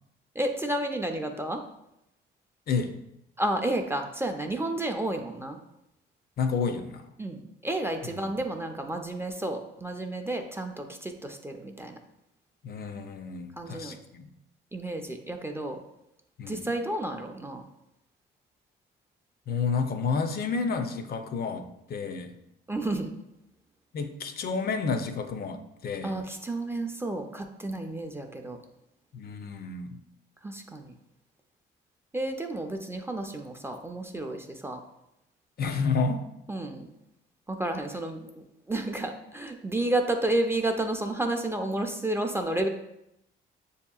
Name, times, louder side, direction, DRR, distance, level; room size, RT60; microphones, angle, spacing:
voice 1, 0.4-1.6 3.4-5.6 7.2-12.0 13.6-14.0 14.7-15.8 16.5-17.6 22.7-23.1 26.0-28.6 30.4-30.9 32.1-34.8 36.5-36.9 37.5-42.7, right 1 dB, 10° right, 4 dB, 0.4 m, -31 dB
voice 2, 2.7-3.0 6.4-7.1 8.1-8.4 12.6-14.3 16.4-16.6 19.5-22.3 23.9-26.1 29.1-30.0 35.6-36.3, left 5 dB, 50° left, 8 dB, 0.4 m, -30 dB
6.6 x 2.8 x 2.3 m, 0.84 s
cardioid pair, 90°, 20 cm